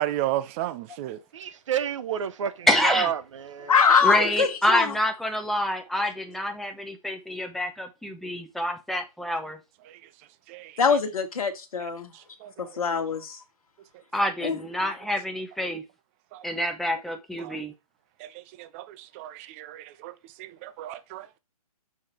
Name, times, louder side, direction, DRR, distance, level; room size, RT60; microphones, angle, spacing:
voice 1, 0.0-1.2 9.9-10.0 10.5-10.8 11.8-12.8 16.3-16.4 17.4-17.6 18.2-20.1 20.4-21.4, right 14 dB, 20° right, 0.5 m, -34 dB
voice 2, 1.3-3.8, right 8 dB, 55° right, 0.9 m, -30 dB
voice 3, 2.7-3.1 4.0-9.6 14.1-15.8 16.4-17.7, left 1 dB, ahead, 0.8 m, -27 dB
voice 4, 3.6-4.9 10.8-12.1 12.6-13.4 14.4-14.6, left 6 dB, 65° left, 1.6 m, -23 dB
5.7 x 5.1 x 4.4 m
hypercardioid pair, 140°, 19 cm